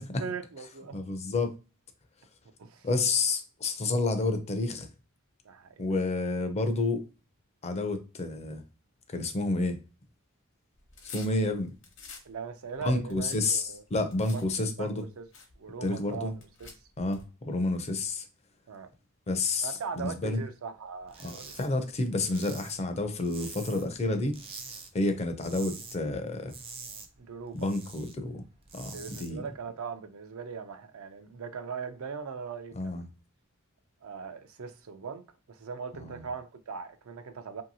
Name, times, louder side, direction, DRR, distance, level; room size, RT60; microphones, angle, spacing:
voice 1, 0.2-1.0 2.6-2.9 5.4-5.9 12.2-13.8 14.3-15.3 15.6-16.7 18.7-18.9 19.6-21.5 27.2-27.7 28.9-33.1 34.0-35.2 35.5-37.6, right 5 dB, 85° right, 0.5 m, -40 dB
voice 2, 0.9-1.6 2.8-4.9 5.8-7.1 7.6-8.6 9.1-9.8 11.1-11.7 12.8-15.0 15.8-16.3 17.0-18.2 19.3-20.4 21.2-24.3 24.9-26.5 27.5-28.4 28.7-29.4 32.8-33.0 35.9-36.2, left 2 dB, 30° left, 0.4 m, -30 dB
sound 1, 10.7-12.3 12.7-14.4 15.0-15.1 15.3-15.5 16.3-17.3, left 5 dB, 65° left, 0.8 m, -48 dB
sound 2, 21.1-21.7 22.0-24.0 24.3-24.9 25.2-26.0 26.3-28.1 28.5-29.3, right 4 dB, 25° right, 0.4 m, -45 dB
2.7 x 2.6 x 2.7 m
head